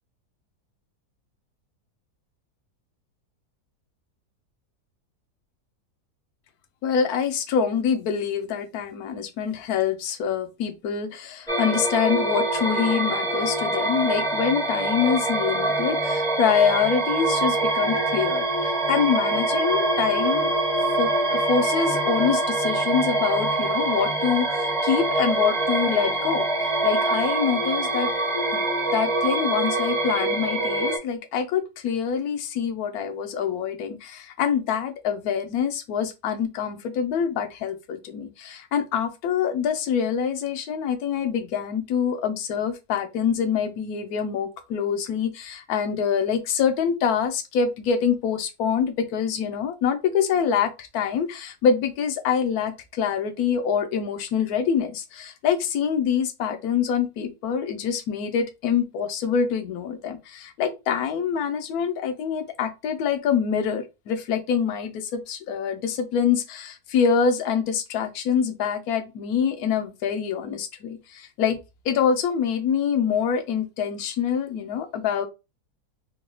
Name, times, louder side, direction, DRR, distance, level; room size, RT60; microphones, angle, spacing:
voice 1, 6.8-20.6 21.0-26.4 26.8-28.1 28.5-28.6 28.9-71.6 71.8-75.2, left 7 dB, 70° left, 1.1 m, -25 dB
sound 1, 11.5-31.0, right 2 dB, 5° left, 0.5 m, -24 dB
3.8 x 2.2 x 3.1 m
omnidirectional pair, 1.8 m